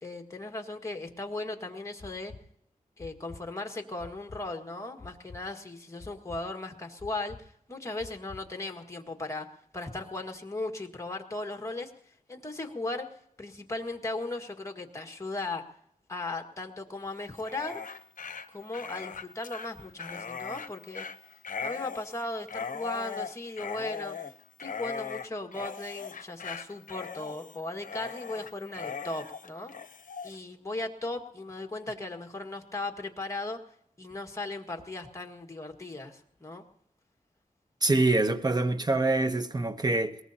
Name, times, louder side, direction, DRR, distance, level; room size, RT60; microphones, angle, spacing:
voice 1, 0.0-2.3 3.0-9.5 9.7-13.1 13.4-15.6 16.1-17.8 18.5-21.0 21.6-24.2 24.6-29.7 30.2-33.6 34.0-36.6, left 2 dB, 20° left, 1.7 m, -37 dB
sound 1, 2.0-2.4 3.0-3.4 4.0-4.4 5.0-5.4 6.0-6.4 7.0-7.4 8.0-8.4, left 3 dB, 45° left, 2.1 m, -46 dB
Dog, 17.3-30.3, left 6 dB, 65° left, 0.8 m, -39 dB
voice 2, 37.8-40.2, right 2 dB, 30° right, 0.9 m, -25 dB
22.0 x 19.0 x 2.8 m
wide cardioid pair, 105°, 14 cm